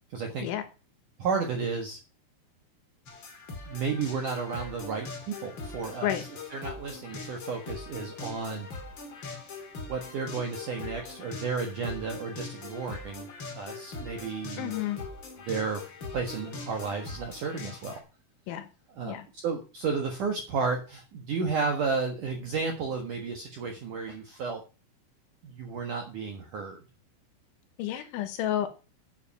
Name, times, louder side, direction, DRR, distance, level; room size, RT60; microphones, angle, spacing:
voice 1, 0.1-0.5 1.2-2.0 3.7-8.7 9.9-13.3 13.6-14.8 15.5-15.8 16.1-18.0 18.9-24.6 25.4-26.8, right 5 dB, 65° right, 3 dB, 2.0 m, -32 dB
sound 1, 3.1-18.0, left 4 dB, 60° left, 1.2 m, -42 dB
voice 2, 14.6-15.0 18.5-18.7 19.1-19.3 27.8-28.7, left 11 dB, 75° left, 9 dB, 3.4 m, -30 dB
9.2 x 8.2 x 5.7 m, 0.32 s
omnidirectional pair, 5.8 m